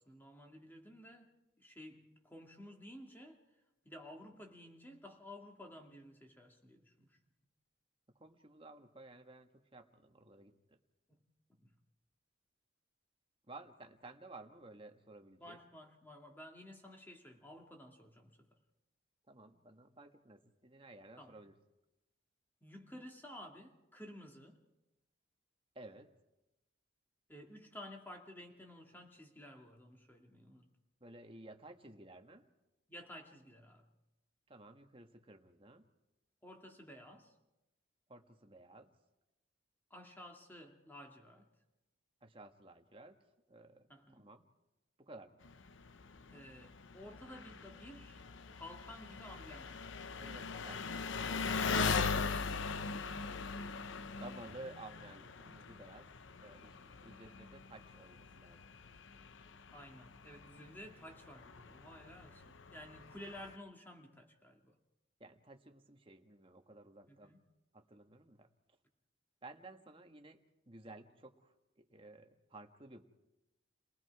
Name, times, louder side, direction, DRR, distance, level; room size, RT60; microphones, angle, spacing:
voice 1, 0.0-3.4 3.8-7.2 11.5-11.7 15.4-18.4 21.2-21.4 22.6-24.6 27.3-30.7 32.9-33.9 36.4-37.3 39.9-41.5 43.9-44.3 46.3-48.2 48.5-49.9 59.7-64.7 67.1-67.4, left 1 dB, 10° left, 2 dB, 2.3 m, -53 dB
voice 2, 8.2-10.8 13.5-15.6 19.3-21.5 25.7-26.1 31.0-32.4 34.5-35.8 38.1-38.9 42.2-43.2 43.5-43.9 44.1-44.4 45.0-45.4 50.2-50.8 54.2-56.1 56.4-58.6 65.2-67.3 67.7-68.5 69.4-70.4 70.7-73.0, right 2 dB, 25° right, 5 dB, 1.5 m, -54 dB
Engine, 45.4-63.6, left 5 dB, 70° left, 0.8 m, -41 dB
30.0 x 20.0 x 4.8 m, 0.96 s
head